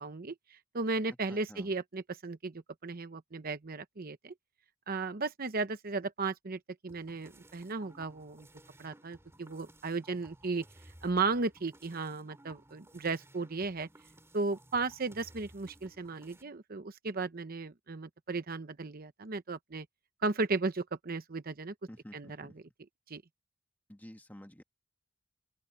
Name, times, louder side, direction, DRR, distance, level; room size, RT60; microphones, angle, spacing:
voice 1, 0.0-4.3 4.9-8.5 8.8-10.6 11.0-13.9 14.3-19.9 20.2-21.7 22.1-22.5 23.1-23.2, right 3 dB, 45° right, 0.8 m, -35 dB
voice 2, 1.3-1.7 21.9-22.6 23.9-24.6, equal, 10° left, 1.6 m, -51 dB
sound 1, 6.9-16.4, right 1 dB, 15° right, 3.2 m, -58 dB
head